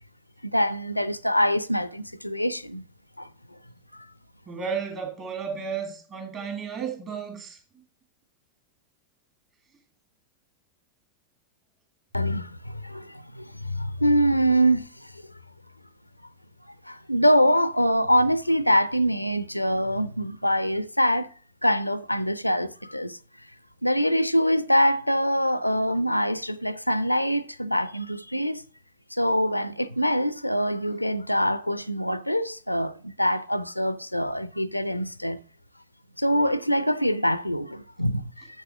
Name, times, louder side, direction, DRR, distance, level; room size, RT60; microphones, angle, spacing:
voice 1, 0.4-2.8 3.2-3.3 12.1-15.1 16.9-21.3 21.6-23.2 23.8-28.6 29.1-35.4 36.2-38.5, equal, 90° left, 0.5 m, -24 dB
voice 2, 4.5-7.6, right 6 dB, 30° right, 3.3 m, -33 dB
7.3 x 6.7 x 6.0 m
figure-of-eight pair, 90°, 0 cm